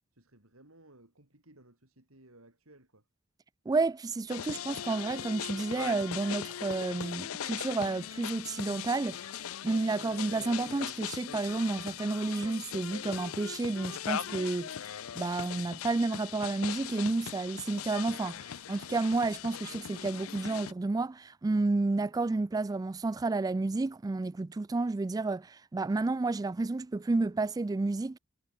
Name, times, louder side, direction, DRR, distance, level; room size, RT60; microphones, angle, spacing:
voice 1, 0.1-3.1, right 1 dB, 85° right, 7.2 m, -59 dB
voice 2, 3.7-28.2, right 3 dB, 20° right, 0.3 m, -31 dB
sound 1, 4.3-20.7, left 10 dB, 85° left, 0.5 m, -40 dB
head